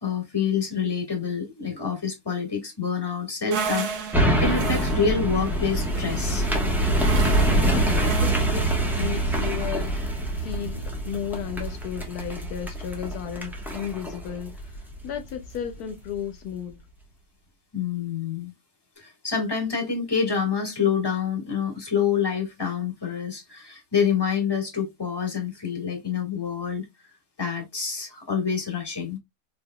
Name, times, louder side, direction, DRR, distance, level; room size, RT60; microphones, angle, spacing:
voice 1, 0.0-6.4 17.7-18.5 19.0-26.8 27.4-29.2, left 6 dB, 15° left, 1.6 m, -27 dB
sound 1, 3.5-8.7, right 5 dB, 80° right, 1.4 m, -34 dB
sound 2, 4.1-15.6 16.0-16.1, right 1 dB, ahead, 1.0 m, -25 dB
voice 2, 7.6-16.8, left 9 dB, 75° left, 1.2 m, -34 dB
4.4 x 3.5 x 2.2 m
omnidirectional pair, 1.6 m